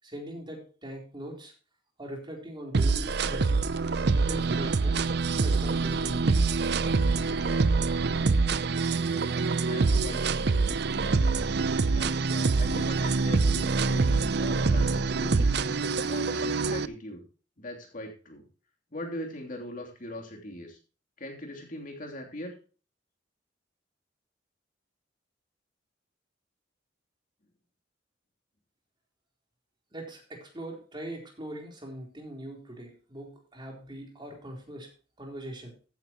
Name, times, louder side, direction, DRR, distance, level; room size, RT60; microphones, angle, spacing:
voice 1, 0.0-1.5 2.0-3.7 4.1-5.0 5.4-6.3 29.9-34.9 35.2-35.7, right 1 dB, 25° right, 1 dB, 3.7 m, -41 dB
sound 1, 2.7-16.9, right 4 dB, 60° right, 0.6 m, -25 dB
voice 2, 9.6-10.2 10.5-10.8 11.9-15.8 16.1-17.2 17.6-18.4 18.9-20.8 21.2-22.5, left 1 dB, 50° left, 1 dB, 3.1 m, -41 dB
15.0 x 9.4 x 3.0 m, 0.37 s
head